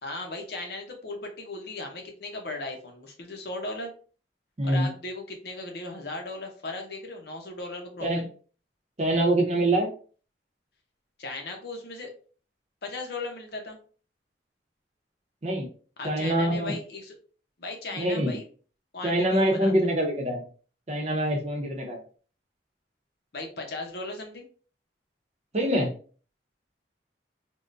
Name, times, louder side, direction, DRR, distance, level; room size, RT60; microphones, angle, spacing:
voice 1, 0.0-3.9 4.6-8.2 11.2-12.1 12.8-13.8 16.0-17.1 17.6-18.4 18.9-19.7 23.3-24.5, left 2 dB, 60° left, 3 dB, 0.7 m, -37 dB
voice 2, 4.6-4.9 8.0-8.3 9.0-9.9 15.4-15.7 16.0-16.8 17.9-18.3 19.0-20.4 20.9-22.0 25.5-25.9, right 1 dB, 35° right, 1 dB, 0.7 m, -25 dB
3.5 x 2.1 x 2.5 m, 0.40 s
head